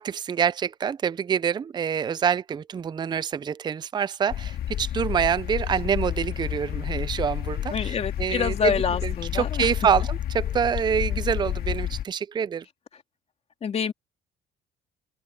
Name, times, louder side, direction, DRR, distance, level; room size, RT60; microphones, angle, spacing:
voice 1, 0.0-12.6, right 7 dB, 25° right, 0.4 m, -26 dB
sound 1, 4.3-12.0, left 11 dB, 65° left, 2.1 m, -30 dB
voice 2, 7.7-9.7 13.6-13.9, left 6 dB, 40° left, 2.9 m, -27 dB
open air
cardioid pair, 110°, 17 cm